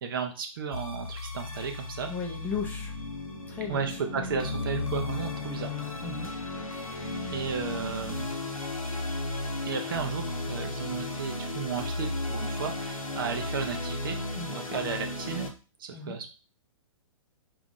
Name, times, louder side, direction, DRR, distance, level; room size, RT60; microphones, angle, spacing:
voice 1, 0.0-2.1 3.7-5.8 7.3-8.3 9.6-14.2 14.5-15.5 15.8-16.3, right 6 dB, 40° right, 5 dB, 0.5 m, -34 dB
sound 1, 0.7-15.5, left 2 dB, 80° left, 0.8 m, -34 dB
voice 2, 2.1-2.9 3.5-3.8 6.0-6.3 14.4-14.8 15.9-16.2, left 5 dB, 10° left, -1 dB, 0.6 m, -36 dB
3.4 x 2.4 x 3.7 m, 0.34 s
figure-of-eight pair, 120°, 18 cm